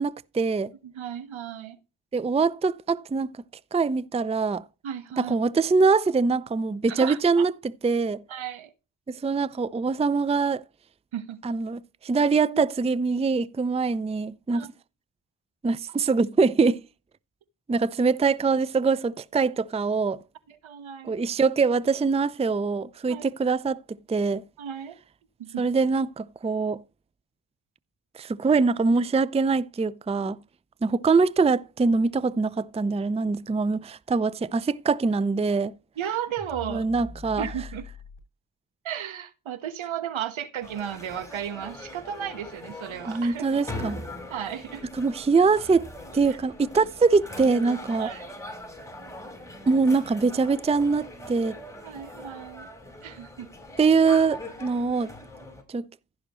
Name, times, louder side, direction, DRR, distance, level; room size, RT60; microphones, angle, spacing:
voice 1, 0.0-0.7 2.1-3.3 3.7-4.6 5.2-8.2 9.1-10.6 11.4-14.7 15.6-16.8 17.7-20.2 21.0-24.4 25.6-26.8 28.1-30.4 30.8-35.7 36.7-37.5 43.1-44.0 45.0-48.1 49.7-51.6 53.8-55.1 55.7-55.9, right 4 dB, 15° right, 0.5 m, -23 dB
voice 2, 0.8-1.8 4.8-5.4 6.9-7.4 8.3-8.7 11.1-11.4 12.5-12.7 14.5-14.7 20.5-21.2 23.1-23.2 24.6-25.0 25.4-25.6 36.0-36.9 37.4-37.8 38.8-43.6 44.3-44.8 46.2-46.4 48.0-48.2 51.8-52.7 53.0-53.5, right 9 dB, 75° right, 1.3 m, -34 dB
sound 1, 36.4-38.2, left 3 dB, 25° left, 6.5 m, -41 dB
sound 2, 40.6-55.6, left 1 dB, 5° left, 4.9 m, -41 dB
15.0 x 6.3 x 3.1 m
supercardioid pair, 40°, 48 cm